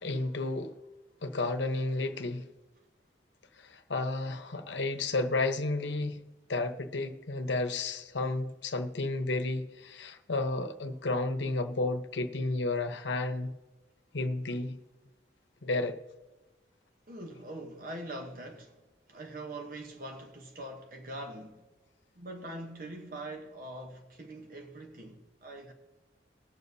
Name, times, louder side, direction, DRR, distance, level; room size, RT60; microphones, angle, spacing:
voice 1, 0.0-0.7 1.2-2.5 3.6-6.2 6.5-13.5 14.1-14.8 15.6-16.0, left 2 dB, 85° left, 0.9 m, -32 dB
voice 2, 17.1-18.8 19.1-21.7 22.2-25.7, right 1 dB, 50° right, 0.9 m, -43 dB
20.5 x 7.0 x 2.7 m
head